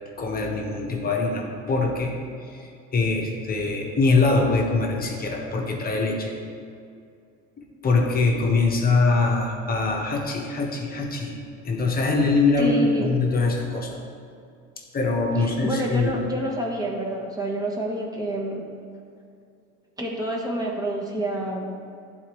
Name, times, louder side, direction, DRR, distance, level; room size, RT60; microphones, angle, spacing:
voice 1, 0.2-2.2 2.5-6.3 7.8-11.4 11.6-14.0 14.9-16.3, left 3 dB, 30° left, 0 dB, 1.1 m, -23 dB
voice 2, 12.6-13.1 15.4-18.6 20.0-21.7, right 1 dB, 10° right, -2 dB, 1.3 m, -28 dB
10.5 x 4.2 x 3.1 m, 2.4 s
supercardioid pair, 105°, 32 cm